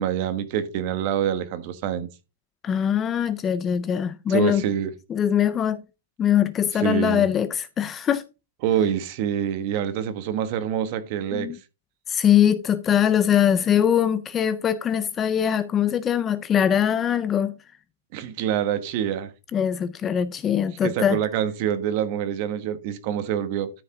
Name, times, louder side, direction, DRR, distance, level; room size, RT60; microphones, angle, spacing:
voice 1, 0.0-2.1 4.3-4.9 6.7-7.3 8.6-11.5 18.1-19.3 20.8-23.7, right 9 dB, 35° right, 1.3 m, -26 dB
voice 2, 2.6-4.6 5.1-5.8 6.2-8.2 11.3-11.6 12.1-17.5 19.5-21.2, left 9 dB, 15° left, 0.4 m, -22 dB
13.5 x 5.3 x 3.7 m
hypercardioid pair, 165°, 0 cm